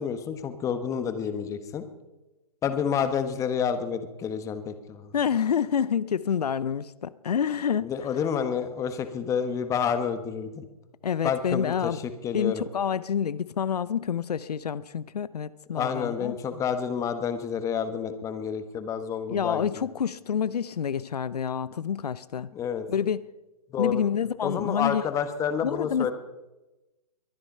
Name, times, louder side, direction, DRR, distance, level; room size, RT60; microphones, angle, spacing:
voice 1, 0.0-1.8 2.6-5.1 7.8-10.7 11.2-12.6 15.8-19.7 22.5-22.9 23.7-24.0 24.4-26.1, left 7 dB, 15° left, 9 dB, 1.3 m, -29 dB
voice 2, 5.1-7.9 11.0-12.0 12.3-16.6 19.3-22.5 22.9-23.2 23.8-25.0 25.6-26.1, left 8 dB, 80° left, 17 dB, 0.7 m, -28 dB
22.5 x 10.0 x 5.5 m, 1.0 s
hypercardioid pair, 140°, 20 cm